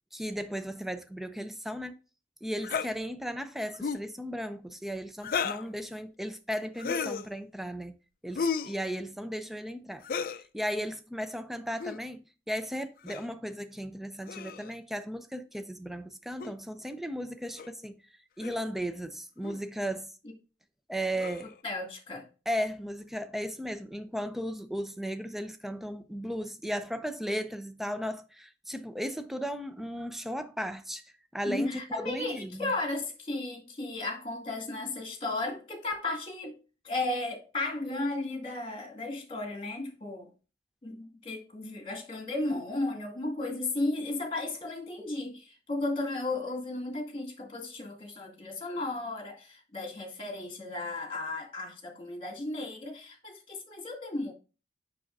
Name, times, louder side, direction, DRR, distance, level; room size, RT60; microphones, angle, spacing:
voice 1, 0.1-1.9 2.4-8.0 8.2-10.0 10.3-17.9 18.4-20.1 20.9-21.5 22.5-31.0 31.3-32.7, equal, ahead, 0.5 m, -36 dB
sound 1, 2.6-2.9 3.7-4.1 5.2-5.7 6.8-7.3 8.4-8.8 10.0-10.4 11.7-12.0 13.1-13.3 14.3-14.7 16.4-16.5 17.6-17.7 18.4-18.6 19.4-19.6 21.2-21.5, left 6 dB, 55° left, 0.4 m, -33 dB
voice 2, 21.6-22.3 31.5-36.6 36.8-40.3 40.8-54.3, left 2 dB, 30° left, 2.1 m, -34 dB
7.5 x 6.0 x 2.6 m
head